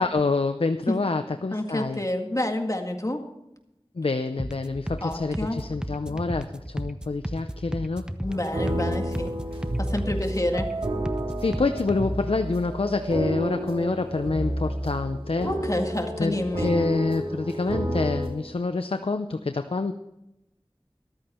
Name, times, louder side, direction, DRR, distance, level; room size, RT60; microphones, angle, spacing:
voice 1, 0.0-2.0 4.0-8.1 11.4-15.5 16.2-19.9, left 3 dB, 90° left, 8 dB, 0.6 m, -27 dB
voice 2, 1.5-3.2 5.0-5.6 8.2-9.3 9.8-10.7 15.4-16.8, left 1 dB, 35° left, 3 dB, 2.0 m, -28 dB
sound 1, 4.4-12.0, equal, 10° right, 0.9 m, -35 dB
sound 2, 8.3-18.3, right 1 dB, 90° right, 2.7 m, -30 dB
14.0 x 13.0 x 4.4 m, 0.90 s
wide cardioid pair, 45°, 9 cm